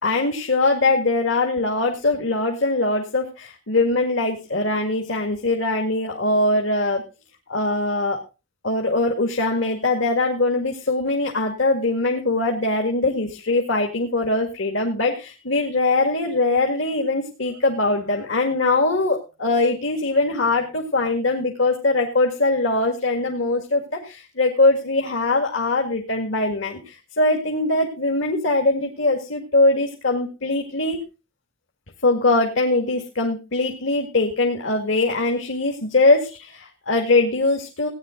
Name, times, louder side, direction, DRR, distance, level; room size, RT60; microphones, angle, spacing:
voice 1, 0.0-7.0 7.5-8.2 8.6-31.0 32.0-37.9, left 2 dB, 70° left, 1 dB, 2.1 m, -22 dB
17.0 x 10.0 x 3.9 m, 0.31 s
head